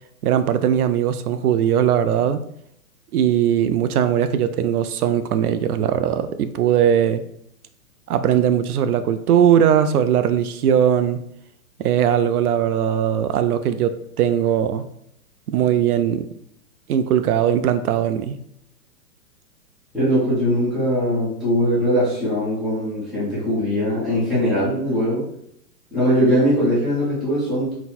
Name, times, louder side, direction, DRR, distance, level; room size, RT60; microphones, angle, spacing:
voice 1, 0.2-2.4 3.1-7.2 8.1-11.2 11.8-14.8 15.5-16.3 16.9-18.4, right 9 dB, 75° right, 11 dB, 0.5 m, -19 dB
voice 2, 19.9-25.3 25.9-27.7, equal, ahead, -13 dB, 0.5 m, -21 dB
4.1 x 2.1 x 4.2 m, 0.73 s
hypercardioid pair, 155°, 46 cm